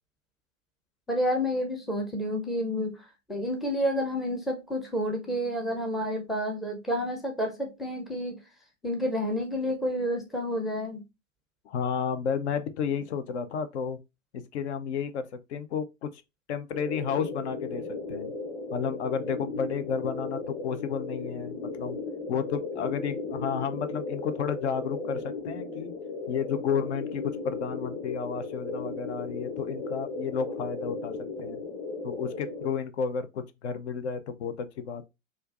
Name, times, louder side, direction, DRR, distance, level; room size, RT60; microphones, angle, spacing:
voice 1, 1.1-8.4 8.8-11.0, equal, ahead, 0.5 m, -30 dB
voice 2, 11.6-14.0 14.3-16.2 16.5-18.3 18.7-22.0 22.3-25.9 26.3-31.6 32.0-35.1, left 7 dB, 60° left, 0.6 m, -32 dB
sound 1, 16.7-32.7, left 3 dB, 15° left, 0.9 m, -36 dB
4.3 x 2.4 x 2.4 m
figure-of-eight pair, 105°, 39 cm